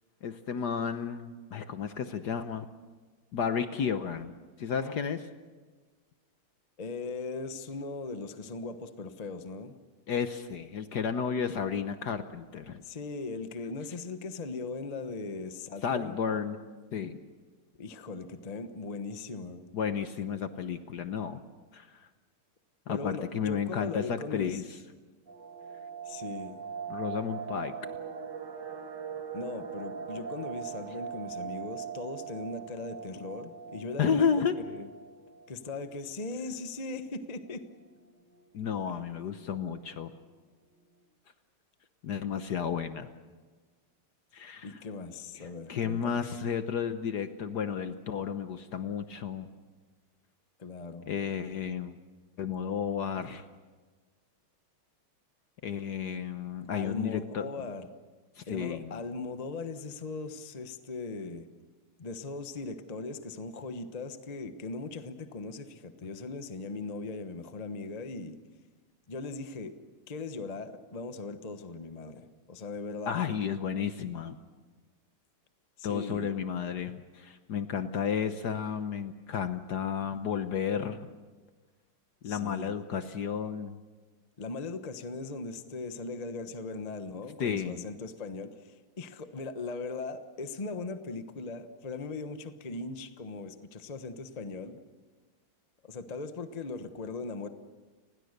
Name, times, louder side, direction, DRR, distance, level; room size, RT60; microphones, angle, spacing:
voice 1, 0.2-2.7 3.3-4.3 4.6-5.3 10.1-12.8 15.8-16.6 16.9-17.2 19.7-21.4 21.7-22.1 22.9-24.8 26.9-27.7 34.0-34.6 38.5-40.1 42.0-43.1 44.3-44.7 45.3-49.5 51.1-52.0 52.4-53.5 55.6-57.4 58.4-58.9 73.1-74.4 75.8-81.1 82.2-83.8 87.4-87.8, left 7 dB, 60° left, 10 dB, 1.3 m, -32 dB
voice 2, 6.8-9.7 12.8-16.2 17.8-19.7 22.9-24.6 26.0-26.6 29.3-34.3 34.7-34.9 35.5-37.6 44.6-46.3 50.6-51.1 56.7-57.9 58.5-61.5 62.0-68.4 69.1-69.8 70.1-73.2 75.8-76.3 82.2-82.7 84.4-94.8 95.8-97.5, left 3 dB, 25° left, 9 dB, 0.9 m, -39 dB
sound 1, 25.3-36.1 36.4-36.5 36.8-37.0 37.4-37.9 38.4-38.5 38.7-39.2 39.5-39.6, right 7 dB, 55° right, 2.1 m, -41 dB
30.0 x 20.5 x 6.7 m, 1.4 s
omnidirectional pair, 2.4 m